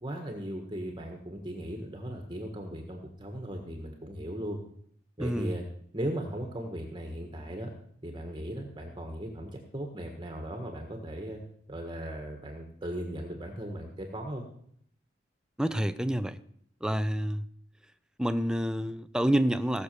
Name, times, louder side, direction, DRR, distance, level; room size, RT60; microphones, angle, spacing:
voice 1, 0.0-4.6 5.2-5.6 5.9-7.7 8.0-11.4 11.7-14.4, right 1 dB, 25° right, 1.6 m, -37 dB
voice 2, 5.2-5.6 15.6-16.4 16.8-17.5 18.2-19.8, equal, 5° right, 0.5 m, -28 dB
17.5 x 6.7 x 6.8 m
head